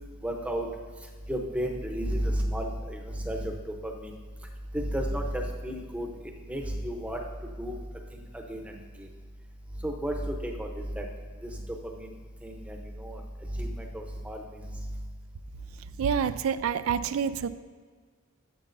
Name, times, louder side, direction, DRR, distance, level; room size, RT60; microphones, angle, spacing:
voice 1, 0.2-0.7 1.3-3.5 3.8-4.1 4.7-6.1 6.5-7.2 7.6-7.8 8.5-8.8 9.8-11.0 11.5-11.6 12.0-12.1 12.4-14.6, equal, 5° right, 1 dB, 0.8 m, -32 dB
voice 2, 16.0-17.5, right 7 dB, 85° right, 13 dB, 0.4 m, -27 dB
12.5 x 7.2 x 2.6 m, 1.6 s
head